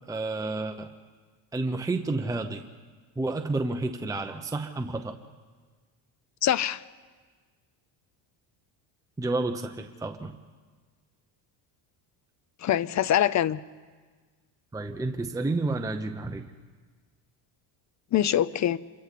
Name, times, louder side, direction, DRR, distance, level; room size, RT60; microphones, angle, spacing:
voice 1, 0.1-0.9 1.5-2.6 3.2-5.2 9.2-10.3 14.7-16.4, right 2 dB, 5° right, 5 dB, 0.8 m, -30 dB
voice 2, 6.4-6.8 12.6-13.6 18.1-18.8, left 11 dB, 35° left, 19 dB, 0.6 m, -24 dB
27.5 x 24.0 x 4.2 m, 1.5 s
cardioid pair, 125°, 48 cm